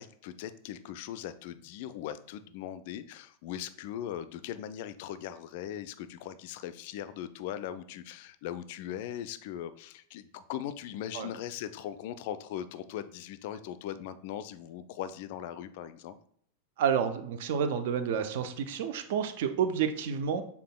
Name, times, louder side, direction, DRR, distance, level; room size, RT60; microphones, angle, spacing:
voice 1, 0.0-16.2, left 11 dB, 50° left, 13 dB, 0.3 m, -39 dB
voice 2, 16.8-20.4, right 7 dB, 55° right, 10 dB, 0.5 m, -29 dB
6.7 x 3.5 x 2.2 m, 0.64 s
figure-of-eight pair, 90°, 0 cm